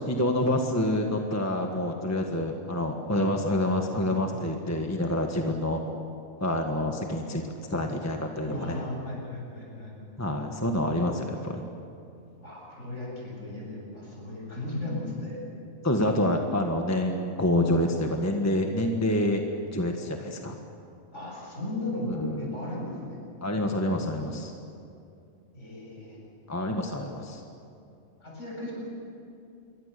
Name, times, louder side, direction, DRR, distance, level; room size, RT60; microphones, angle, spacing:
voice 1, 0.0-5.8 6.4-7.4 7.7-8.8 10.2-11.7 15.8-19.4 19.7-20.6 22.1-22.5 23.4-24.5 26.5-27.4, left 1 dB, 10° left, 3 dB, 1.5 m, -27 dB
voice 2, 8.4-10.0 12.4-15.4 21.1-23.2 25.5-26.4 28.2-28.7, left 1 dB, 55° left, -3 dB, 8.4 m, -36 dB
27.5 x 22.5 x 6.9 m, 2.6 s
omnidirectional pair, 1.5 m